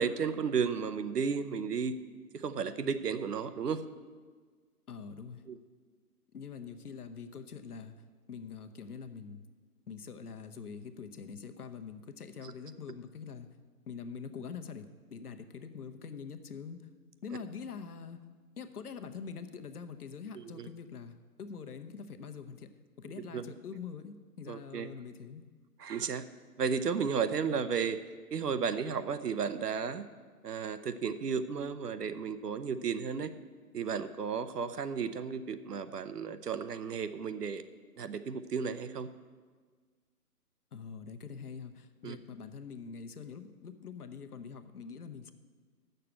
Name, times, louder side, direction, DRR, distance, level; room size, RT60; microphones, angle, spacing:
voice 1, 0.0-1.9 2.3-3.8 5.5-5.6 20.6-20.7 23.3-23.4 24.5-24.9 25.8-26.2 26.6-28.0 28.3-30.0 30.4-33.3 33.7-37.6 38.0-39.1 42.0-42.2, right 6 dB, 85° right, 12 dB, 0.8 m, -33 dB
voice 2, 4.9-5.4 6.3-8.0 8.3-9.5 9.9-13.5 13.9-16.8 17.2-18.2 18.6-22.7 23.0-25.4 40.7-45.3, left 6 dB, 70° left, 8 dB, 1.0 m, -44 dB
7.6 x 6.7 x 8.1 m, 1.5 s
hypercardioid pair, 155°, 46 cm